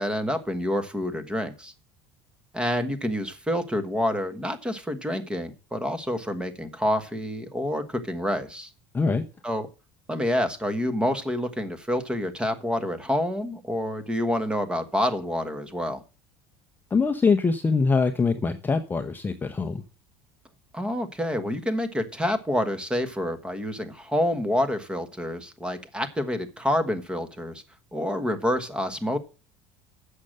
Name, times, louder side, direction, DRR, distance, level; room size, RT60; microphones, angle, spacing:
voice 1, 0.0-1.7 2.5-8.7 9.4-9.7 10.1-16.0 20.7-27.6 27.9-29.2, equal, 5° right, 10 dB, 1.3 m, -28 dB
voice 2, 16.9-19.8, left 4 dB, 15° left, 7 dB, 0.7 m, -23 dB
8.2 x 6.6 x 7.4 m, 0.34 s
cardioid pair, 130°, 13 cm